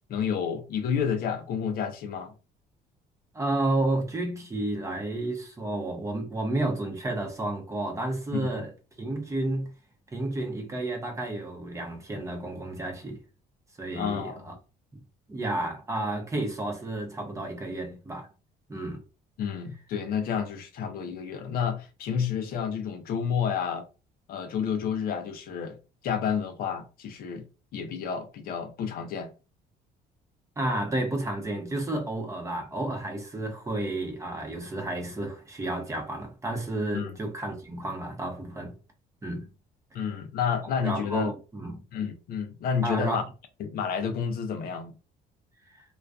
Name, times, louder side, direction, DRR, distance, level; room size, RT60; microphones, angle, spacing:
voice 1, 0.1-2.3 8.3-8.7 13.9-14.4 19.4-23.9 24.3-25.8 26.0-27.4 27.7-29.3 36.9-37.2 39.9-41.3 41.9-43.2 43.6-44.9, left 7 dB, 60° left, 0.5 m, -30 dB
voice 2, 3.3-8.7 9.0-9.7 10.1-13.2 13.8-14.5 15.3-18.3 18.7-19.0 30.6-38.8 39.2-39.5 40.8-41.8 42.8-43.3 45.7-45.8, right 2 dB, 15° right, 0.7 m, -31 dB
2.4 x 2.3 x 2.3 m
cardioid pair, 110°, 17 cm